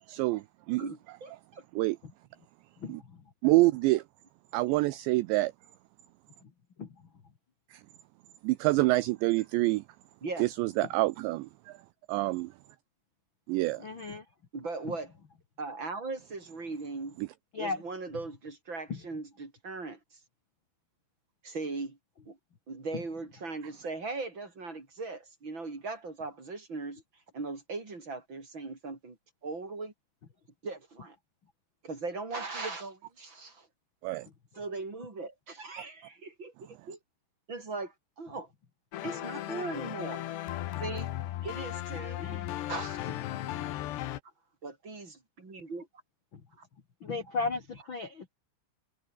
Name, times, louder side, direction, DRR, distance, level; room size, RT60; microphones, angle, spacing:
voice 1, 0.1-0.8 1.8-2.0 2.9-3.0 3.4-4.0 4.5-5.5 7.7-7.8 8.4-9.8 10.4-11.8 12.1-12.5 13.5-13.8 17.2-17.3 34.0-34.3, right 20 dB, 85° right, 2.6 m, -27 dB
voice 2, 0.8-1.6 10.2-10.4 14.5-15.1 15.6-17.2 17.6-20.0 21.4-22.0 22.3-22.4 22.7-27.0 27.3-29.2 29.4-29.9 30.6-31.2 31.8-33.7 34.6-37.0 37.5-38.5 39.0-40.2 40.8-41.1 41.4-42.2 42.7-43.1 44.6-45.9 46.6-46.7 47.3-47.4, right 3 dB, 25° right, 5.2 m, -39 dB
voice 3, 13.8-14.2 14.8-14.9 17.5-17.8 18.9-19.0 22.9-23.0 41.9-42.7 46.3-46.4 47.0-48.3, left 4 dB, 50° left, 1.4 m, -36 dB
sound 1, 38.9-44.2, left 13 dB, 65° left, 3.2 m, -36 dB
omnidirectional pair, 5.8 m